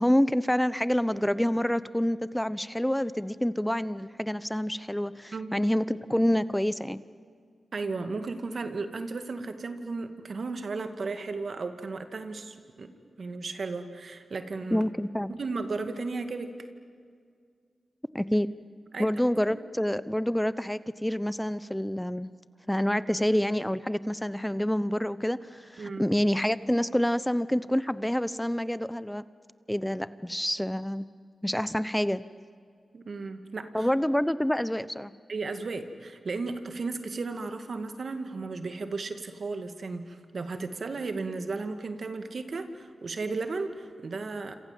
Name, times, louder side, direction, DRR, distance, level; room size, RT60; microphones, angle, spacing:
voice 1, 0.0-7.0 14.7-15.3 18.1-18.5 19.0-22.3 22.7-29.2 29.7-31.0 31.4-32.2 33.7-35.1, equal, 5° left, 16 dB, 0.8 m, -27 dB
voice 2, 7.7-12.9 13.2-14.9 15.3-16.7 18.9-19.1 19.5-19.6 25.8-26.1 32.9-33.9 35.3-44.5, right 3 dB, 65° right, 8 dB, 2.2 m, -35 dB
27.5 x 27.5 x 7.7 m, 2.1 s
cardioid pair, 45°, 0 cm